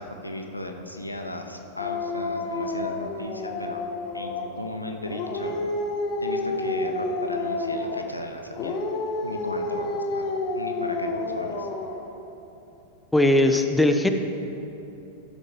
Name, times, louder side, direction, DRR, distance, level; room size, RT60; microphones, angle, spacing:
voice 1, 0.0-3.8 4.1-5.6 6.2-8.8 9.2-10.3 10.5-11.7, left 1 dB, 85° left, 4 dB, 0.7 m, -36 dB
Dog, 1.8-4.6 5.0-8.1 8.5-12.1, left 2 dB, 40° left, 0.8 m, -29 dB
voice 2, 13.1-14.1, left 1 dB, 5° left, 6 dB, 0.5 m, -19 dB
12.5 x 7.2 x 3.4 m, 3.0 s
figure-of-eight pair, 90°, 0 cm